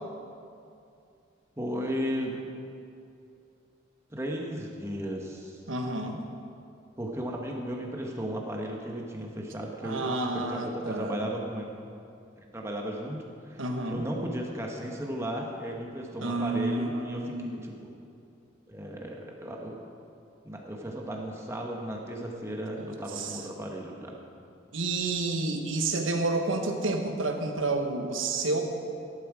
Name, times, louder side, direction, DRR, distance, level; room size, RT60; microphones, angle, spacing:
voice 1, 1.6-2.4 4.1-5.6 7.0-11.7 12.4-17.9 18.7-19.8 20.4-24.1, equal, 15° right, 0 dB, 1.1 m, -35 dB
voice 2, 5.7-6.2 9.8-11.3 13.6-14.0 16.2-17.6 23.2-23.3 24.7-28.6, right 2 dB, 90° right, 4 dB, 1.3 m, -30 dB
13.5 x 11.0 x 4.9 m, 2.5 s
head